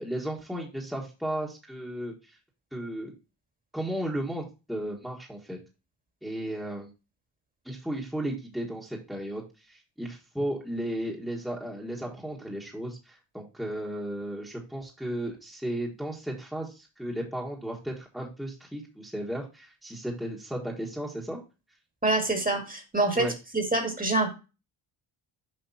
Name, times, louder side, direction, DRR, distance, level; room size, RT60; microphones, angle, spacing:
voice 1, 0.0-2.4 2.7-3.1 3.7-5.6 6.2-6.9 7.6-21.4 23.1-23.3, right 1 dB, ahead, -2 dB, 1.3 m, -34 dB
voice 2, 22.0-23.3 23.5-24.3, right 2 dB, 15° right, 4 dB, 1.6 m, -25 dB
7.3 x 5.1 x 2.7 m, 0.30 s
cardioid pair, 105°, 49 cm